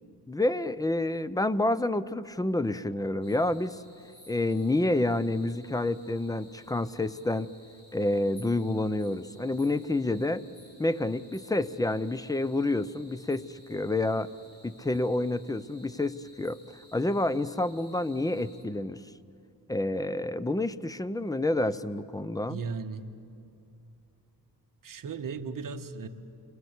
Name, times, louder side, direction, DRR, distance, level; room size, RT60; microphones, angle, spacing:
voice 1, 0.3-3.8 4.3-7.5 7.9-10.4 10.8-13.4 13.7-14.3 14.6-16.6 16.9-19.0 19.7-22.6, left 2 dB, 10° left, 0.5 m, -28 dB
sound 1, 3.2-18.6, equal, 25° left, 4.5 m, -58 dB
voice 2, 22.5-23.0 24.8-26.1, right 5 dB, 55° right, 1.4 m, -36 dB
29.0 x 22.0 x 8.2 m
wide cardioid pair, 130°, 40 cm